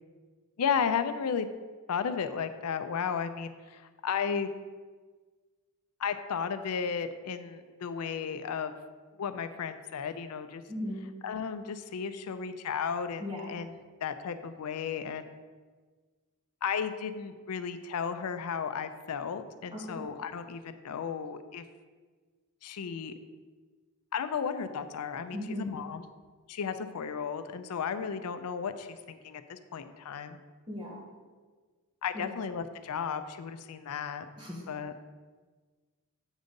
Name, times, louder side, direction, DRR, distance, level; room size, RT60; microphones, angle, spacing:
voice 1, 0.6-1.5 1.9-4.5 6.0-8.7 9.2-10.6 11.2-13.7 14.0-15.4 16.6-21.6 22.6-23.1 24.1-26.1 26.5-30.4 32.0-34.3 34.7-34.9, left 6 dB, 85° left, 10 dB, 0.4 m, -34 dB
voice 2, 10.7-11.0 13.2-13.5 19.7-20.0 25.3-25.7 30.7-31.1 32.1-32.4 34.4-34.6, left 1 dB, 20° right, -3 dB, 1.5 m, -37 dB
8.1 x 3.8 x 5.2 m, 1.4 s
head